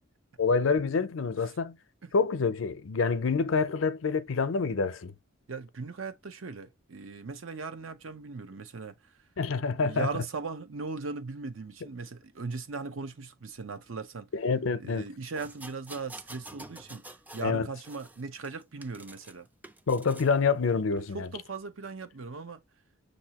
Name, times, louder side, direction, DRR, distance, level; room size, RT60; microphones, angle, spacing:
voice 1, 0.4-1.8 2.1-5.1 9.4-10.1 14.3-15.1 17.4-17.7 19.9-21.3, left 4 dB, 80° left, 0.6 m, -27 dB
voice 2, 5.5-8.9 9.8-14.3 14.8-17.0 17.3-19.5 21.1-22.6, right 4 dB, 80° right, 0.7 m, -38 dB
sound 1, 15.4-17.5 17.8-19.3 19.6-20.3 21.0-21.1, right 1 dB, 10° right, 0.4 m, -48 dB
6.5 x 2.7 x 2.9 m
head